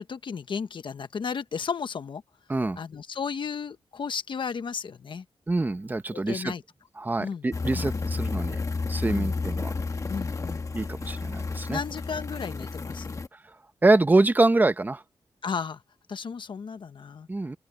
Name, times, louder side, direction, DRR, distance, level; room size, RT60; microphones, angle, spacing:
voice 1, 0.0-2.2 2.8-5.2 6.1-6.6 7.2-7.5 7.7-7.9 9.1-9.4 10.1-10.7 11.7-13.2 15.4-15.8 16.1-17.3, left 6 dB, 65° left, 1.1 m, -34 dB
voice 2, 5.5-6.5 7.0-8.6 8.9-9.7 10.7-11.8 13.8-15.0 17.3-17.6, right 2 dB, 20° right, 1.0 m, -25 dB
sound 1, 7.5-13.3, left 3 dB, 35° left, 1.4 m, -31 dB
open air
wide cardioid pair, 120°, 9 cm